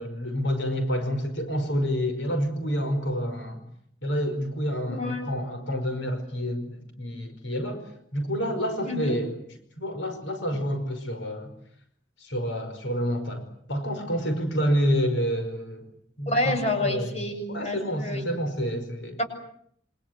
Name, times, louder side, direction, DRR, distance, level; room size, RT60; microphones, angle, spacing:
voice 1, 0.0-3.6 4.0-9.4 9.8-11.5 12.2-15.9 16.2-17.1 17.5-19.2, equal, 85° left, 7 dB, 5.2 m, -28 dB
voice 2, 4.9-5.3 8.8-9.2 16.3-18.3 19.2-19.3, left 1 dB, 35° left, 5 dB, 7.7 m, -28 dB
29.0 x 26.0 x 8.0 m, 0.68 s
head